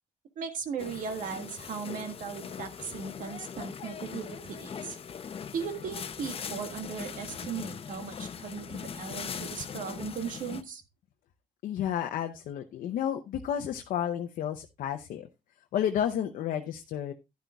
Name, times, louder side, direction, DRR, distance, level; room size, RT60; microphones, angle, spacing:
voice 1, 0.3-5.0 5.5-10.8, right 6 dB, 75° right, 7 dB, 1.7 m, -37 dB
sound 1, 0.8-10.6, left 7 dB, 45° left, 0.7 m, -40 dB
voice 2, 11.6-15.3 15.7-17.1, left 10 dB, 80° left, 5 dB, 0.7 m, -31 dB
11.5 x 10.5 x 2.3 m, 0.24 s
cardioid pair, 90°, 14 cm